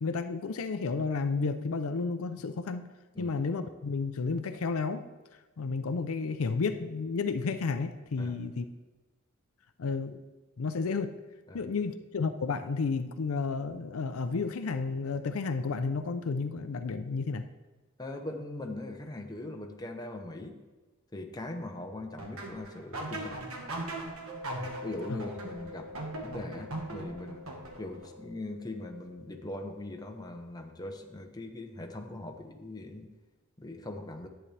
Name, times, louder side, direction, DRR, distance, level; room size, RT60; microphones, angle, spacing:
voice 1, 0.0-2.9 3.2-5.0 5.6-8.7 9.8-10.2 10.6-11.2 11.5-17.4 25.1-25.2, left 4 dB, 80° left, 10 dB, 0.5 m, -32 dB
voice 2, 18.0-20.6 21.1-23.4 24.8-25.9 26.2-33.1 33.6-34.3, left 2 dB, 20° left, 3 dB, 0.8 m, -40 dB
sound 1, 22.2-28.1, right 2 dB, 85° right, 1.6 m, -39 dB
Mallet percussion, 24.3-30.6, left 3 dB, 30° right, 3.3 m, -48 dB
11.0 x 8.7 x 3.3 m, 1.2 s
head